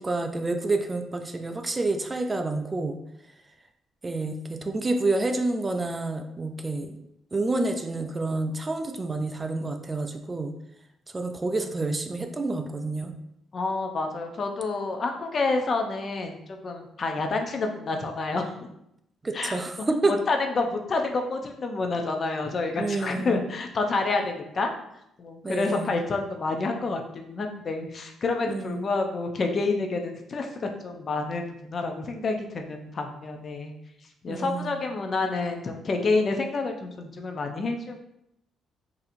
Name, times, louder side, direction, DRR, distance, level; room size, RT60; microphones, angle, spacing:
voice 1, 0.0-3.0 4.0-6.9 7.3-10.5 11.1-13.1 19.2-20.1 22.8-23.4 25.4-25.9 28.5-28.9 34.3-34.8, right 2 dB, 25° right, 6 dB, 0.3 m, -28 dB
voice 2, 13.5-18.7 19.3-24.7 25.2-30.5 30.8-33.7 34.2-38.0, left 3 dB, 45° left, 4 dB, 0.5 m, -28 dB
4.1 x 2.7 x 2.6 m, 0.79 s
cardioid pair, 90°, 0 cm